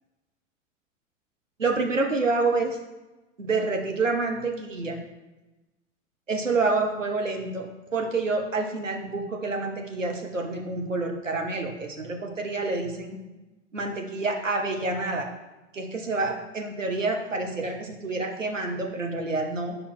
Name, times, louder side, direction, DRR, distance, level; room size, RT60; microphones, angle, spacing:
voice 1, 1.6-2.8 3.4-5.0 6.3-13.2 13.7-15.3 15.7-19.8, right 3 dB, 85° right, 3 dB, 1.0 m, -28 dB
6.6 x 5.2 x 4.3 m, 1.1 s
figure-of-eight pair, 85°, 37 cm